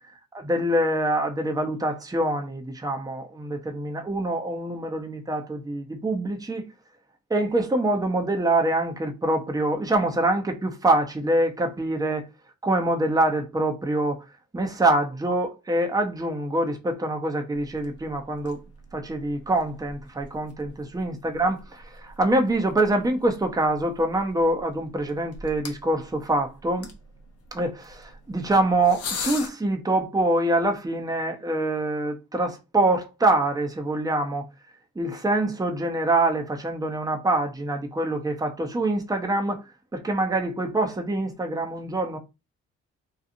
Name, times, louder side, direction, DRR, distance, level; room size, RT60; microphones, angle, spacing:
voice 1, 0.3-6.7 7.3-12.2 12.6-14.3 14.5-18.6 18.9-26.9 27.5-34.5 35.0-39.6 39.9-42.2, right 2 dB, 10° right, 0.7 m, -25 dB
sound 1, 17.5-29.5, left 4 dB, 55° left, 0.8 m, -42 dB
2.8 x 2.3 x 2.6 m
supercardioid pair, 60°, 30 cm